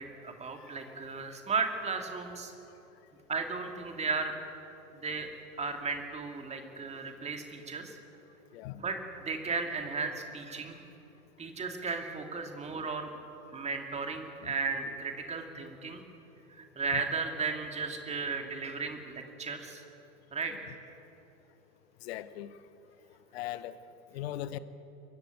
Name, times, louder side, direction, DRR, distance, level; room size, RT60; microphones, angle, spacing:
voice 1, 0.0-2.5 3.3-4.3 4.9-5.3 5.6-8.0 8.8-10.8 11.4-13.1 13.5-16.0 16.5-19.8 20.3-20.5, right 4 dB, 15° right, 4 dB, 2.4 m, -35 dB
voice 2, 8.5-8.8 16.9-17.0 22.0-22.6 23.3-23.7 24.1-24.6, left 13 dB, 45° left, 15 dB, 1.1 m, -39 dB
23.0 x 14.5 x 9.1 m, 2.9 s
figure-of-eight pair, 90°, 43 cm